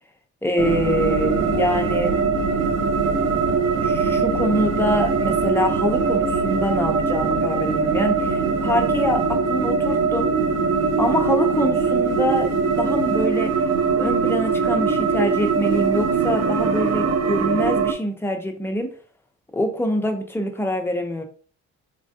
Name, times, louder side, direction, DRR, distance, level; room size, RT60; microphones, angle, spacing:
voice 1, 0.4-2.2 3.8-10.3 11.0-13.5 14.0-18.9 19.5-21.2, left 1 dB, 10° left, 3 dB, 0.4 m, -25 dB
sound 1, 0.6-17.9, right 5 dB, 55° right, 0.5 m, -21 dB
3.4 x 2.2 x 2.6 m, 0.42 s
cardioid pair, 125°, 31 cm